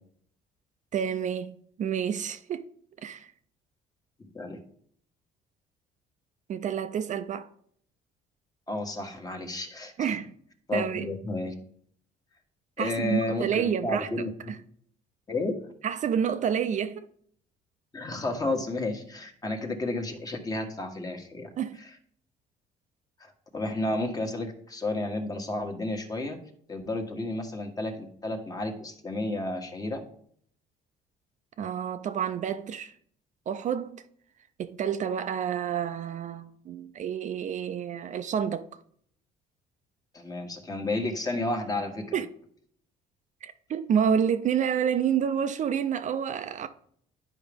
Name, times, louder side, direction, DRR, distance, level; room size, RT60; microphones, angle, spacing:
voice 1, 0.9-2.7 3.0-3.3 6.5-7.5 10.0-10.3 10.7-11.1 12.8-14.6 15.8-17.1 21.6-21.8 31.6-32.9 33.5-34.0 34.6-38.6 42.1-42.3 43.4-46.7, right 8 dB, 45° right, 0.5 m, -29 dB
voice 2, 4.2-4.6 8.7-10.2 10.7-11.5 12.8-14.5 15.3-15.7 17.9-21.5 21.8-21.9 23.2-26.4 26.7-30.0 40.1-42.1, left 2 dB, 20° left, 1.3 m, -32 dB
10.5 x 4.9 x 3.5 m
cardioid pair, 110°, 17 cm